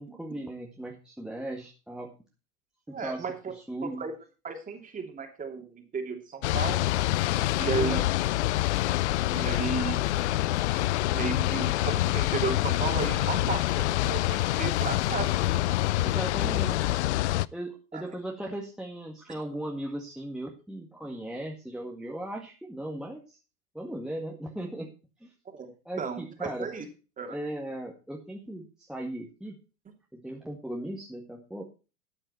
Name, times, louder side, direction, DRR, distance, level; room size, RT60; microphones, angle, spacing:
voice 1, 0.0-2.2 2.9-3.3 3.5-4.0 7.7-8.1 13.1-13.3 16.0-16.9 17.5-23.4 23.7-24.9 25.2-25.3 25.9-26.7 27.3-29.6 30.1-31.6, right 1 dB, ahead, -1 dB, 1.8 m, -37 dB
voice 2, 2.9-3.5 3.8-4.1 4.4-6.9 7.6-8.0 9.3-10.0 11.1-15.6 16.4-16.5 17.9-18.0 25.5-25.7 26.0-26.9 27.2-27.4, right 5 dB, 20° right, 5 dB, 2.8 m, -34 dB
sound 1, 6.4-17.5, left 16 dB, 50° left, 0.5 m, -26 dB
13.0 x 8.8 x 4.3 m, 0.33 s
hypercardioid pair, 105°, 44 cm